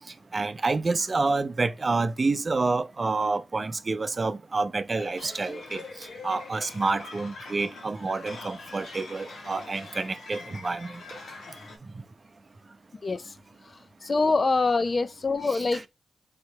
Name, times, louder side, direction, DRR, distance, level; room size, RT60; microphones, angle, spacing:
voice 1, 0.3-5.8 6.2-11.0 15.4-15.8, right 3 dB, 45° right, 0.5 m, -28 dB
sound 1, 5.0-11.8, left 3 dB, 80° left, 1.2 m, -43 dB
voice 2, 14.1-15.9, left 3 dB, 50° left, 0.5 m, -24 dB
3.8 x 2.8 x 4.4 m
supercardioid pair, 45°, 0 cm